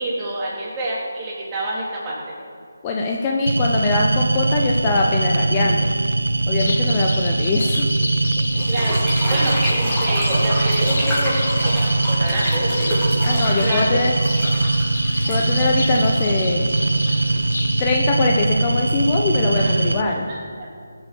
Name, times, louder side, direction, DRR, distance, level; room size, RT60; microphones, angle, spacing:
voice 1, 0.0-2.3 8.7-9.0 9.3-12.9 13.6-13.8 19.6-19.8 20.0-20.4, right 1 dB, 15° right, -7 dB, 3.7 m, -27 dB
voice 2, 2.8-5.9 6.5-7.9 8.6-8.7 13.2-14.2 15.3-16.7 17.8-20.3, left 3 dB, 20° left, 0 dB, 1.0 m, -22 dB
sound 1, 3.5-20.0, right 2 dB, 80° right, 0.7 m, -21 dB
sound 2, 6.6-17.9, left 3 dB, 60° left, 1.6 m, -32 dB
sound 3, 8.5-16.5, equal, 5° left, 4.0 m, -28 dB
16.0 x 8.0 x 7.1 m, 2.4 s
figure-of-eight pair, 160°, 0 cm